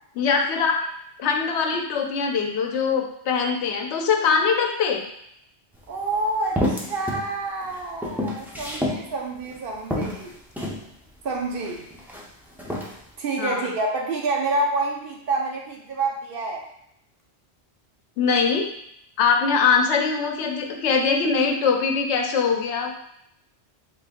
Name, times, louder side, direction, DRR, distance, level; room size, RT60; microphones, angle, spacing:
voice 1, 0.2-0.8 1.2-5.0 13.4-13.7 18.2-18.7 19.2-23.0, left 5 dB, 85° left, 3 dB, 0.9 m, -22 dB
sound 1, 5.7-5.8 6.6-7.3 7.6-9.0 9.5-9.6 9.9-10.8 11.5-12.2 12.6-12.9, left 1 dB, 5° right, 0.3 m, -28 dB
voice 2, 5.9-10.4 11.2-11.8 13.2-16.6, right 2 dB, 60° right, 0 dB, 0.8 m, -28 dB
3.4 x 2.5 x 3.6 m, 0.75 s
omnidirectional pair, 1.1 m